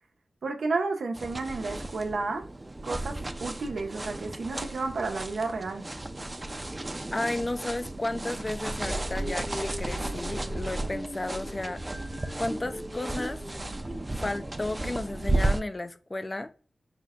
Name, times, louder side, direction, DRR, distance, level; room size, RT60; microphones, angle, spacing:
voice 1, 0.4-2.4 2.8-5.9, right 3 dB, 85° right, 0.8 m, -31 dB
sound 1, 1.1-15.6, right 2 dB, 30° right, 0.5 m, -34 dB
voice 2, 7.1-11.8 12.4-13.4 14.0-16.5, left 2 dB, 35° left, 0.4 m, -33 dB
sound 2, 8.8-14.0, equal, 15° left, 0.8 m, -40 dB
5.1 x 2.2 x 3.5 m
cardioid pair, 50°, 0 cm